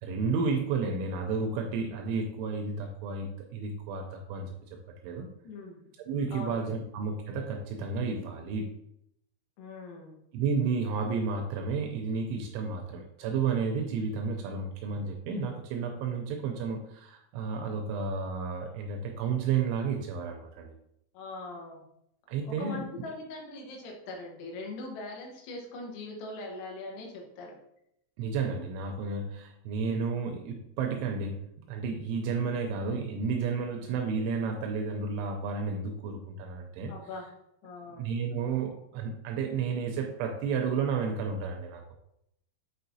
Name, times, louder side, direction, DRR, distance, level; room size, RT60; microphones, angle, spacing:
voice 1, 0.0-4.5 5.0-5.3 6.1-8.7 10.3-20.7 22.3-22.8 28.2-31.4 31.7-36.9 38.0-41.8, right 5 dB, 80° right, 2 dB, 2.8 m, -32 dB
voice 2, 5.4-5.8 6.3-6.8 9.6-10.2 21.1-21.8 22.5-27.6 36.9-37.3 37.6-38.1, left 2 dB, 85° left, 0 dB, 4.0 m, -41 dB
9.0 x 4.4 x 2.7 m, 0.77 s
omnidirectional pair, 5.9 m